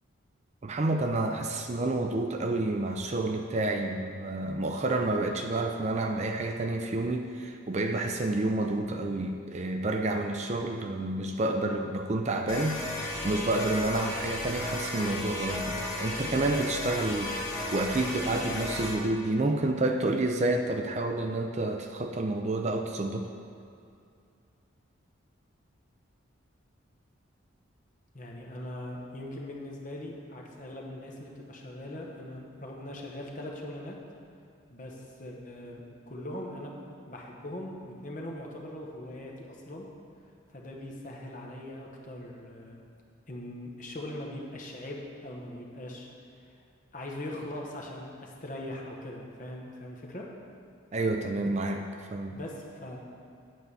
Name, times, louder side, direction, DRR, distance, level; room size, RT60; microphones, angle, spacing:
voice 1, 0.6-23.3 50.9-52.4, right 2 dB, 30° right, 4 dB, 0.4 m, -29 dB
sound 1, 12.5-19.0, left 1 dB, 20° left, 2.1 m, -34 dB
voice 2, 28.1-34.0 34.7-39.9 40.5-42.8 43.3-46.1 46.9-50.3 52.3-53.0, left 1 dB, 40° left, -1 dB, 1.1 m, -41 dB
9.2 x 4.6 x 6.8 m, 2.4 s
head